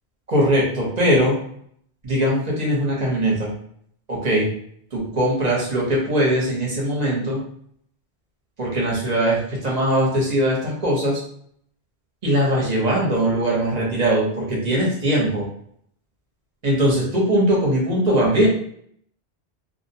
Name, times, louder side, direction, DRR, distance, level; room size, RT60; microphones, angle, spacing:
voice 1, 0.3-1.4 2.0-3.5 4.1-4.5 4.9-7.4 8.6-11.2 12.2-15.5 16.6-18.5, right 1 dB, 45° right, -3 dB, 0.8 m, -20 dB
2.4 x 2.1 x 2.6 m, 0.65 s
omnidirectional pair, 1.1 m